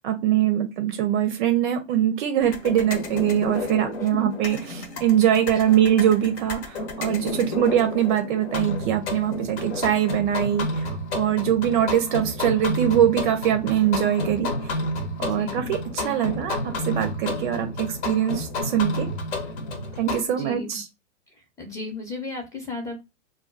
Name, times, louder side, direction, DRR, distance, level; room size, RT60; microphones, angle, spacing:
voice 1, 0.0-14.7 15.2-19.1 20.0-20.8, right 10 dB, 40° right, 0.6 m, -23 dB
sound 1, 2.4-20.2, left 2 dB, 55° left, 1.0 m, -31 dB
voice 2, 5.4-5.9 7.3-7.7 15.2-15.8 20.3-20.7 21.6-23.0, left 3 dB, 10° left, 0.7 m, -35 dB
2.3 x 2.1 x 3.8 m
hypercardioid pair, 110°, 39 cm